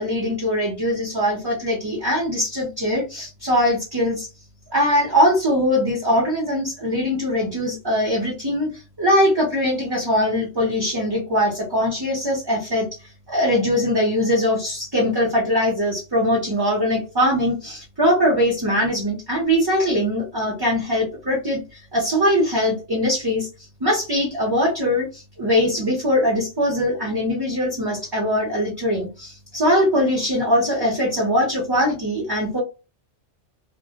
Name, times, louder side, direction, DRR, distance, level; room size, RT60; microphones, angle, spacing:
voice 1, 0.0-4.3 4.7-12.9 13.3-23.5 23.8-32.6, equal, 25° right, -3 dB, 0.6 m, -21 dB
2.2 x 2.1 x 2.7 m, 0.30 s
omnidirectional pair, 1.2 m